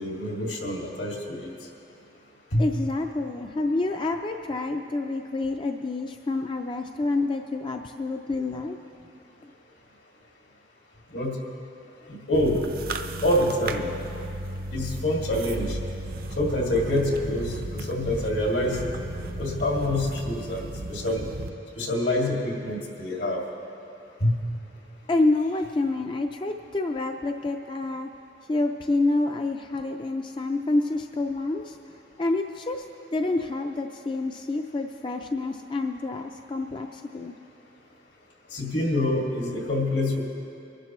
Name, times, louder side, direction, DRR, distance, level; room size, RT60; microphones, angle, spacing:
voice 1, 0.0-1.5 2.5-2.6 11.1-11.4 12.1-12.6 13.2-13.9 14.7-15.8 16.4-18.8 19.4-21.3 21.8-23.4 24.2-24.4 38.5-40.2, left 1 dB, 80° left, -2 dB, 2.2 m, -26 dB
voice 2, 2.6-8.8 25.1-28.1 28.5-31.8 32.2-32.9 33.1-37.3, left 2 dB, 30° left, 4 dB, 0.4 m, -28 dB
sound 1, 12.3-21.5, right 1 dB, 55° right, 0.6 m, -34 dB
23.5 x 11.5 x 3.1 m, 2.7 s
head